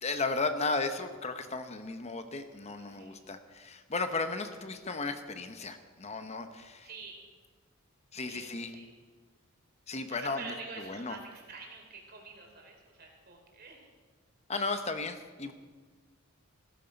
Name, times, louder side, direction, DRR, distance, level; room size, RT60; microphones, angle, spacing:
voice 1, 0.0-6.9 8.1-8.7 9.9-11.2 14.5-15.5, left 3 dB, 30° left, 8 dB, 0.9 m, -35 dB
voice 2, 2.8-3.2 6.8-7.2 8.2-8.9 10.1-13.9, right 4 dB, 45° right, 1 dB, 3.4 m, -47 dB
16.5 x 14.0 x 5.3 m, 1.5 s
head